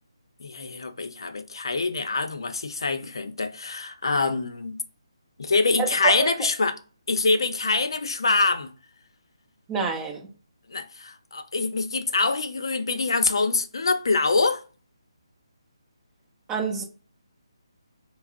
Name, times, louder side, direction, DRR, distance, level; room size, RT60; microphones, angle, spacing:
voice 1, 0.4-4.8 5.4-6.8 7.1-8.7 10.7-14.6, left 3 dB, 60° left, 0.6 m, -25 dB
voice 2, 5.8-6.3 9.7-10.3 16.5-16.8, right 5 dB, 15° right, 0.7 m, -27 dB
5.6 x 2.0 x 2.5 m
figure-of-eight pair, 145°, 3 cm